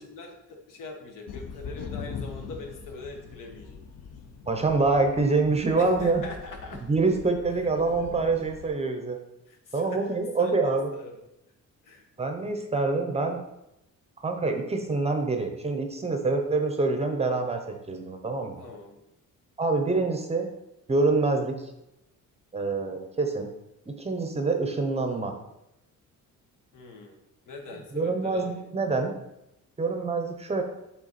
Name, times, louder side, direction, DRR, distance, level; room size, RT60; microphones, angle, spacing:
voice 1, 0.0-3.8 5.8-6.8 9.5-11.2 11.8-12.1 18.6-19.0 26.7-27.2 27.5-28.6, left 3 dB, 75° left, 3 dB, 1.2 m, -42 dB
Thunder & Kookaburra Magpies Parrots, 1.3-8.7, left 5 dB, 50° left, 0.6 m, -42 dB
voice 2, 4.5-6.2 6.9-9.2 9.7-10.9 12.2-13.4 14.2-18.6 19.6-20.5 20.9-21.7 22.5-23.5 23.9-25.3 27.9-29.1 29.8-30.6, right 3 dB, 20° right, 4 dB, 0.7 m, -26 dB
7.7 x 3.5 x 4.1 m, 0.89 s
cardioid pair, 135°, 32 cm